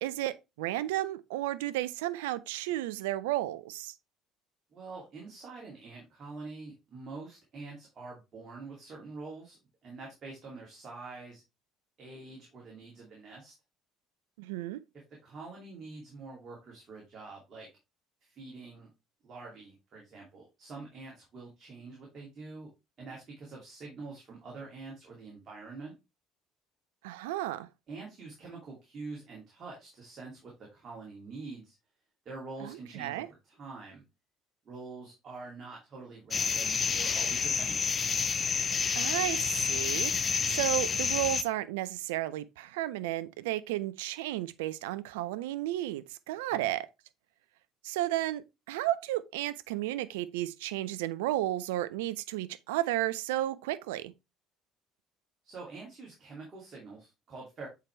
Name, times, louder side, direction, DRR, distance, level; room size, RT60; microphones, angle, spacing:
voice 1, 0.0-3.9 14.4-14.8 27.0-27.7 32.6-33.3 38.9-46.9 47.8-54.1, right 15 dB, 75° right, 0.4 m, -33 dB
voice 2, 4.7-9.6 9.8-11.4 12.0-13.5 15.2-17.7 18.2-18.9 19.2-22.7 23.0-25.9 27.9-31.7 32.2-34.0 34.6-37.8 46.5-46.7 55.4-57.7, right 3 dB, 45° right, 2.4 m, -45 dB
sound 1, 36.3-41.4, left 6 dB, 35° left, 0.5 m, -29 dB
7.5 x 4.6 x 3.1 m
hypercardioid pair, 55°, 0 cm